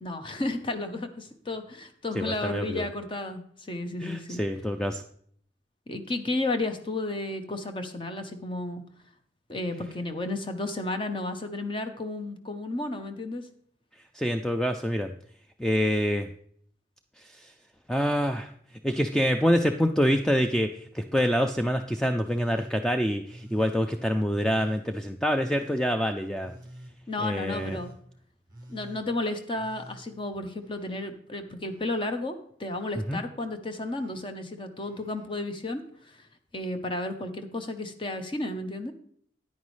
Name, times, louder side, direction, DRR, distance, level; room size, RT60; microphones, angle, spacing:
voice 1, 0.0-4.4 5.9-8.8 9.5-13.4 27.1-27.9 28.7-35.8 36.5-38.9, left 2 dB, 30° left, 7 dB, 0.8 m, -33 dB
voice 2, 2.1-2.9 4.0-5.0 14.1-15.1 15.6-16.3 17.2-17.5 17.9-18.5 18.8-26.6 27.2-27.8 33.1-33.2, equal, 5° left, 5 dB, 0.3 m, -26 dB
Telephone, 20.1-20.6 21.1-21.7 22.2-22.7 23.2-23.8 24.3-24.8 25.3-25.9 26.4-26.9 27.4-28.0 28.5-29.0 29.5-31.1 31.4-32.1 32.7-33.2 33.7-34.2 34.8-35.3 36.5-36.6, right 1 dB, 20° right, 1.6 m, -49 dB
9.6 x 9.3 x 3.2 m, 0.63 s
head